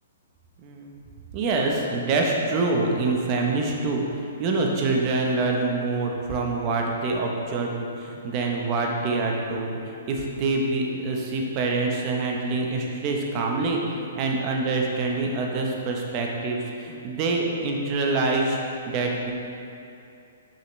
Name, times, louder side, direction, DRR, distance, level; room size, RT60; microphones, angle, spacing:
voice 1, 0.6-0.9 1.3-4.0 4.4-18.6 18.9-19.3, right 3 dB, 30° right, 0 dB, 0.8 m, -25 dB
6.0 x 5.6 x 3.1 m, 2.6 s
hypercardioid pair, 155°, 0 cm